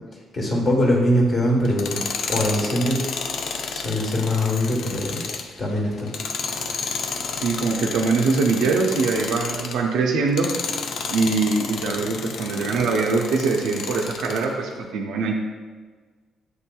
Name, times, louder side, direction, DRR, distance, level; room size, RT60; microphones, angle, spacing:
voice 1, 0.3-2.0 2.3-3.0 3.7-5.2 5.6-6.1, equal, 40° left, 0 dB, 1.2 m, -22 dB
Tools, 1.6-9.8 10.3-14.5, left 5 dB, 70° left, 0.4 m, -31 dB
voice 2, 7.4-10.5 11.1-15.4, right 4 dB, 90° right, 1 dB, 0.4 m, -23 dB
7.9 x 2.8 x 2.2 m, 1.5 s
cardioid pair, 90°, 0 cm